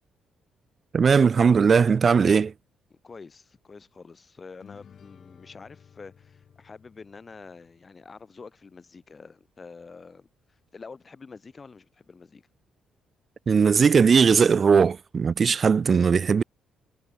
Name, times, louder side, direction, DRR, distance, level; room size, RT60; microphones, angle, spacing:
voice 1, 0.9-2.5 13.5-16.4, right 6 dB, 40° right, 0.5 m, -19 dB
voice 2, 2.9-12.4, left 4 dB, 35° left, 5.1 m, -47 dB
sound 1, 4.6-8.2, left 7 dB, 55° left, 5.0 m, -54 dB
cardioid pair, 85°, 0 cm